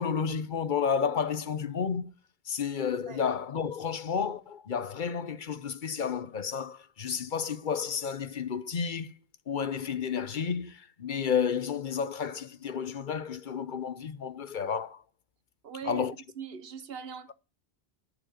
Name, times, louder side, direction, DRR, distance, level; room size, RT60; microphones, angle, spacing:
voice 1, 0.0-2.2 2.5-9.1 9.5-15.0 15.8-16.1, left 7 dB, 55° left, 0.9 m, -31 dB
voice 2, 15.6-16.1 16.4-17.3, right 7 dB, 70° right, 1.3 m, -40 dB
11.5 x 8.0 x 5.1 m
omnidirectional pair, 1.1 m